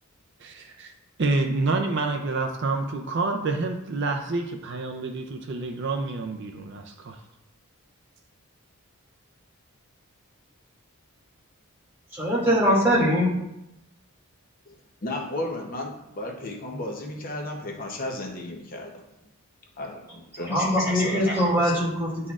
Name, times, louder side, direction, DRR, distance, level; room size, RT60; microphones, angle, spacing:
voice 1, 0.4-0.9 1.2-7.2, right 3 dB, 50° right, 4 dB, 0.5 m, -28 dB
voice 2, 12.1-13.3 20.5-22.3, equal, 10° right, -6 dB, 2.2 m, -22 dB
voice 3, 15.0-18.9 19.8-21.8, left 2 dB, 40° left, 0 dB, 0.8 m, -34 dB
9.8 x 4.2 x 2.4 m, 0.86 s
head